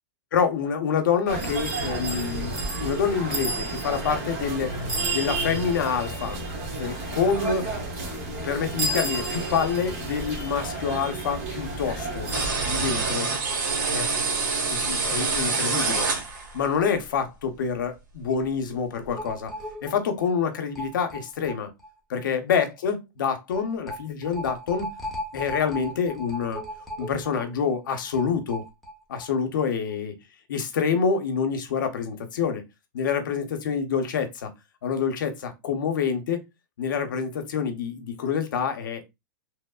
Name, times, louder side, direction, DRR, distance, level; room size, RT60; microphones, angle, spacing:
voice 1, 0.3-4.8 5.1-6.4 6.7-7.7 8.4-12.3 12.7-13.3 13.9-14.1 14.6-16.1 16.5-19.5 19.8-21.7 22.1-24.9 25.3-26.6 27.0-28.6 29.1-30.1 30.5-32.6 32.9-34.5 34.8-36.4 36.8-39.0, left 6 dB, 85° left, 0.7 m, -27 dB
sound 1, 1.3-13.1, right 2 dB, 45° right, 1.2 m, -31 dB
sound 2, 12.3-16.7, right 4 dB, 85° right, 1.2 m, -26 dB
sound 3, 19.2-21.9 22.2-22.3 22.5-22.6 23.5-29.3 29.6-29.7 29.9-30.0, equal, ahead, 0.6 m, -37 dB
3.0 x 2.0 x 2.3 m
supercardioid pair, 145°, 10 cm